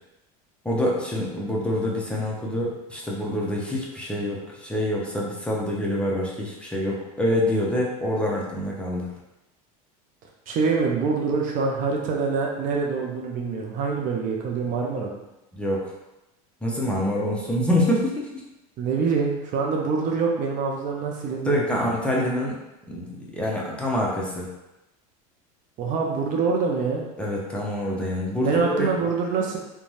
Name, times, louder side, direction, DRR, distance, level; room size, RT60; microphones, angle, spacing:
voice 1, 0.6-9.1 15.5-15.9 16.6-18.4 21.4-22.6 22.9-24.5 27.2-28.5 28.8-28.9, left 1 dB, 5° left, -4 dB, 0.6 m, -26 dB
voice 2, 10.5-15.2 18.8-21.6 25.8-27.1 28.4-29.6, right 5 dB, 45° right, 0 dB, 0.5 m, -25 dB
2.5 x 2.2 x 3.1 m, 0.96 s
supercardioid pair, 105°, 19 cm